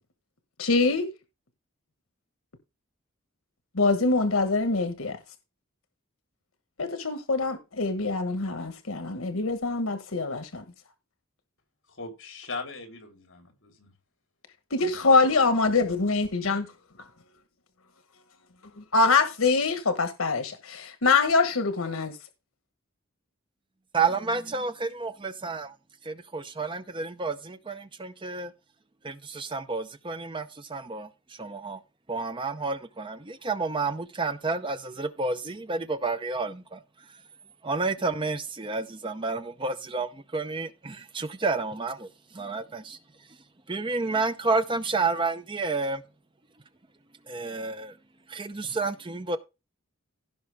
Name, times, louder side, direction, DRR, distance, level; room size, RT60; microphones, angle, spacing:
voice 1, 0.6-1.1 3.7-5.2 6.8-10.6 14.7-16.7 18.8-22.2, left 3 dB, 85° left, 1.3 m, -24 dB
voice 2, 11.9-13.9, left 3 dB, 60° left, 3.7 m, -39 dB
voice 3, 23.9-25.7 26.0-28.5 29.0-31.8 32.1-36.8 37.6-43.0 43.7-46.0 47.3-48.0 48.3-49.4, right 3 dB, 25° right, 0.6 m, -30 dB
16.5 x 5.5 x 3.5 m
head